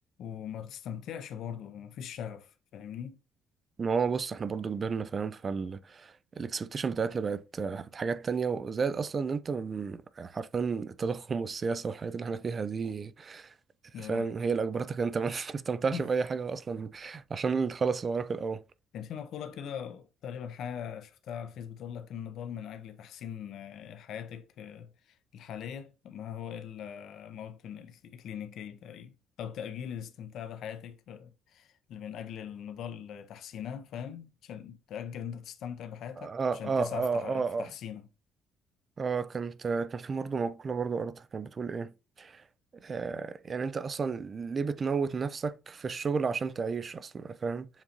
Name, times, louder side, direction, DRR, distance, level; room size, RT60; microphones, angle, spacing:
voice 1, 0.2-3.2 13.9-14.3 15.9-16.0 18.9-38.1, left 8 dB, 70° left, 0.6 m, -41 dB
voice 2, 3.8-13.5 14.0-18.6 36.2-37.7 39.0-41.9 42.2-42.4 42.8-47.7, right 5 dB, 40° right, 0.4 m, -32 dB
7.1 x 2.6 x 2.9 m
supercardioid pair, 80°, 0 cm